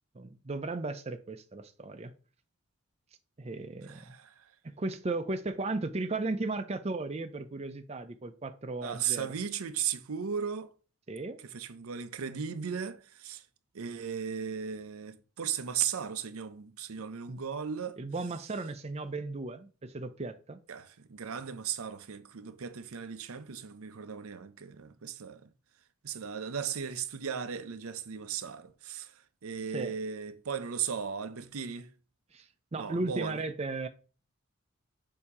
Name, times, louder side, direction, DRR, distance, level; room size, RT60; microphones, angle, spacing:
voice 1, 0.1-2.1 3.4-4.1 4.6-9.3 11.1-11.4 17.3-17.4 18.0-20.6 29.7-29.9 32.3-32.5 32.7-33.9, right 2 dB, 30° right, 0.5 m, -35 dB
voice 2, 3.9-4.3 8.8-10.7 11.5-13.4 13.7-18.0 20.7-25.5 26.0-29.1 29.4-31.9 32.8-33.4, right 7 dB, 85° right, 0.6 m, -36 dB
7.0 x 2.8 x 4.8 m
head